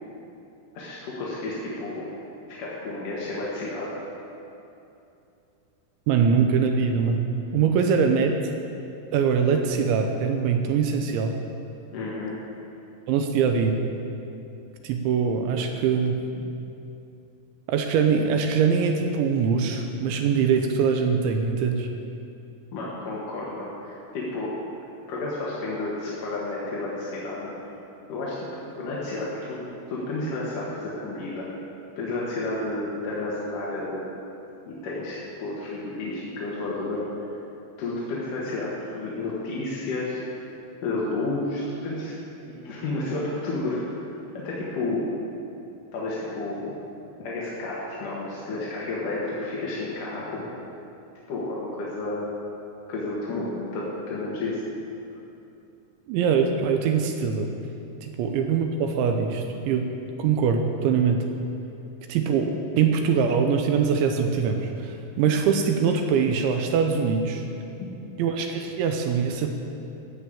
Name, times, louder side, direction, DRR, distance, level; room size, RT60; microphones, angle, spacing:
voice 1, 0.7-2.1 2.6-4.0 11.9-12.3 22.7-24.5 25.1-27.5 28.1-31.5 32.0-34.0 34.7-37.1 37.8-40.2 40.8-42.1 42.5-43.9 44.3-45.1 45.9-46.8 47.2-50.5 51.3-52.3 52.9-54.6 67.8-67.9, left 2 dB, 60° left, -6 dB, 2.4 m, -31 dB
voice 2, 6.1-7.2 7.5-8.3 9.1-11.3 13.1-13.8 14.8-16.2 17.7-21.9 56.1-57.5 58.0-59.9 60.2-61.3 62.1-67.4 68.2-69.5, right 6 dB, 80° right, 4 dB, 2.8 m, -23 dB
14.0 x 7.0 x 8.7 m, 2.8 s
omnidirectional pair, 5.9 m